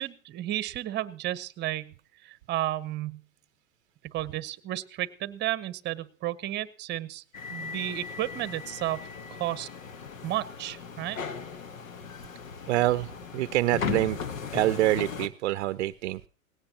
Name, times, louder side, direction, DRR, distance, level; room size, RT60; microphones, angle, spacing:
voice 1, 0.0-1.9 2.2-3.2 4.0-7.2 7.5-9.7 10.2-11.2, right 14 dB, 25° right, 18 dB, 0.9 m, -33 dB
sound 1, 7.3-15.3, left 6 dB, 75° left, 1.3 m, -37 dB
voice 2, 12.7-14.2 14.5-16.2, right 16 dB, 55° right, 15 dB, 0.6 m, -26 dB
18.5 x 17.0 x 2.8 m, 0.40 s
hypercardioid pair, 105°, 40 cm